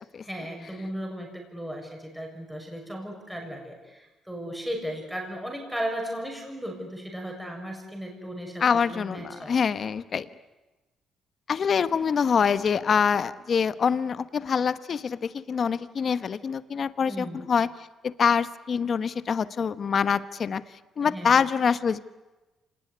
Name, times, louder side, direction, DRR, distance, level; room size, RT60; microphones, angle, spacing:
voice 1, 0.2-9.6 17.1-17.4 21.0-21.3, equal, ahead, 1 dB, 6.5 m, -36 dB
voice 2, 8.6-10.3 11.5-17.7 18.0-20.6 21.0-22.0, left 6 dB, 50° left, 14 dB, 1.1 m, -25 dB
26.5 x 19.5 x 9.7 m, 1.1 s
cardioid pair, 90°, 0 cm